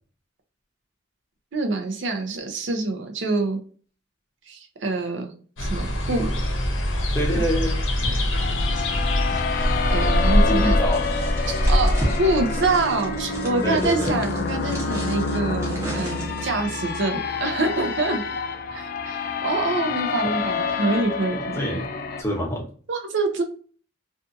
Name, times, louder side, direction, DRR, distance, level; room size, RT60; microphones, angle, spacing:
voice 1, 1.5-3.6 4.5-5.3 5.6-6.3 7.3-7.4 9.9-10.8 11.7-18.2 18.7-21.6 22.9-23.4, right 2 dB, 65° right, 4 dB, 0.5 m, -25 dB
sound 1, 5.6-13.2, left 1 dB, 75° left, 0.7 m, -23 dB
voice 2, 7.1-7.8 10.5-11.0 13.6-14.2 20.2-20.3 21.6-21.9 22.2-22.7, equal, 15° left, -2 dB, 0.7 m, -26 dB
sound 2, 8.3-22.2, left 4 dB, 45° left, 0.3 m, -28 dB
sound 3, 10.9-16.6, equal, 15° right, 0.8 m, -35 dB
2.6 x 2.4 x 2.5 m, 0.42 s
head